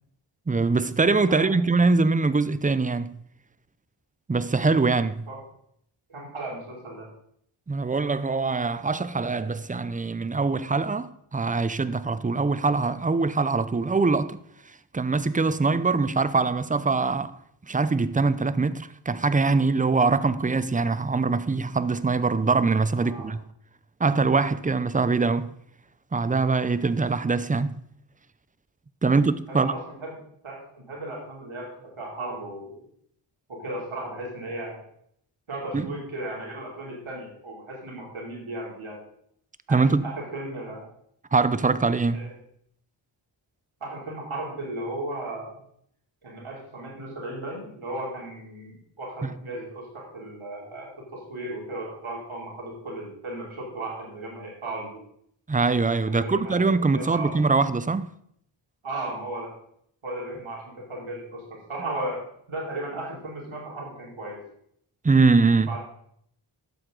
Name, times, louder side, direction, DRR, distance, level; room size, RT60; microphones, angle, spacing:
voice 1, 0.5-3.2 4.3-5.3 7.7-14.4 14.7-17.3 17.7-23.4 24.0-25.5 26.1-27.8 29.0-29.7 35.7-35.9 39.7-40.1 41.3-42.3 49.2-49.3 55.5-58.1 65.0-65.8, right 4 dB, 15° right, 0.5 m, -23 dB
voice 2, 6.1-7.1 23.0-23.4 29.0-29.2 29.5-30.1 30.4-32.8 33.5-34.8 35.5-39.0 39.7-40.9 42.1-42.3 43.8-45.6 46.2-55.0 56.0-57.4 58.8-59.5 60.0-62.2 62.5-64.4 65.7-65.8, right 1 dB, 80° right, 3.1 m, -36 dB
12.0 x 8.0 x 3.8 m
wide cardioid pair, 60°, 48 cm